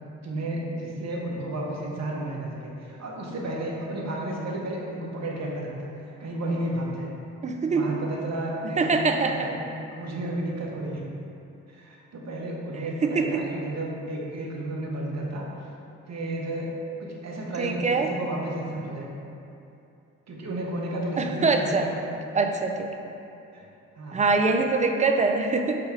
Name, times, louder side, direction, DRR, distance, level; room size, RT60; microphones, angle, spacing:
voice 1, 0.2-5.9 6.2-7.1 7.7-8.9 9.2-9.5 9.9-11.0 11.7-15.5 16.1-19.1 20.3-22.0 23.5-23.7 24.0-24.2, right 1 dB, 50° right, -2 dB, 0.9 m, -32 dB
voice 2, 7.4-7.9 8.8-9.4 13.0-13.3 17.6-18.1 21.2-21.9 22.3-22.9 24.1-25.8, right 4 dB, 20° right, 3 dB, 0.4 m, -23 dB
6.7 x 2.2 x 3.3 m, 2.7 s
hypercardioid pair, 45°, 35 cm